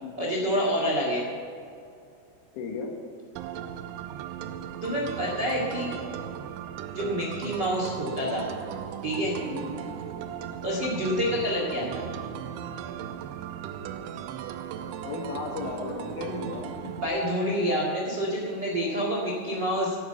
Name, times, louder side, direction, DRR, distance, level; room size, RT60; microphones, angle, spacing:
voice 1, 0.2-1.2 4.8-5.9 6.9-8.5 9.0-9.4 10.6-12.0 17.0-20.0, equal, 55° right, -3 dB, 1.2 m, -27 dB
voice 2, 2.5-2.9 9.4-9.9 15.0-16.9 17.6-17.7, left 3 dB, 80° left, 2 dB, 4.1 m, -35 dB
sound 1, 3.4-17.1, right 9 dB, 85° right, 2.7 m, -37 dB
12.0 x 8.0 x 8.9 m, 2.4 s
omnidirectional pair, 5.7 m